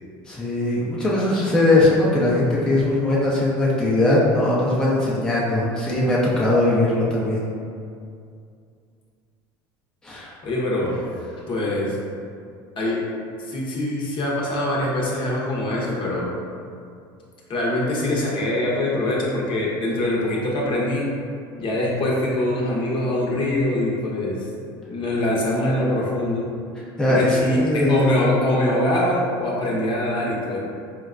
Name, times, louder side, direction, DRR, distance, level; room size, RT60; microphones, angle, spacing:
voice 1, 0.3-7.4 10.0-10.3 27.0-28.1, left 2 dB, 5° left, -7 dB, 0.6 m, -20 dB
voice 2, 10.4-11.0 11.5-12.0 12.8-13.0 13.4-16.3 17.5-21.1 21.6-24.5 24.9-26.4 27.1-30.6, left 1 dB, 45° left, -5 dB, 0.8 m, -23 dB
4.4 x 2.1 x 2.4 m, 2.4 s
supercardioid pair, 100°, 12 cm